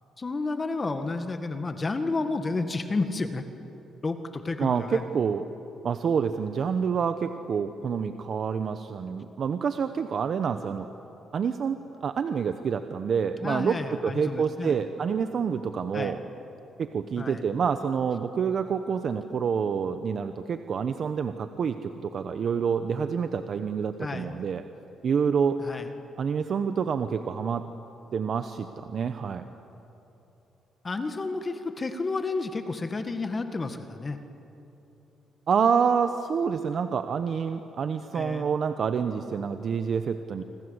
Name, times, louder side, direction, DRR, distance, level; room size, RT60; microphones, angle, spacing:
voice 1, 0.2-3.4 4.0-5.0 13.4-14.8 15.9-16.2 17.2-17.5 24.0-24.4 25.6-25.9 30.8-34.2 38.1-38.5, left 3 dB, 30° left, 7 dB, 1.8 m, -31 dB
voice 2, 4.6-5.4 5.8-10.9 11.3-11.8 12.0-13.8 14.0-16.2 16.8-24.6 25.0-25.6 26.2-27.6 28.1-29.5 35.5-40.4, right 6 dB, 55° right, 9 dB, 1.0 m, -27 dB
27.5 x 25.5 x 8.2 m, 3.0 s
cardioid pair, 90°, 0 cm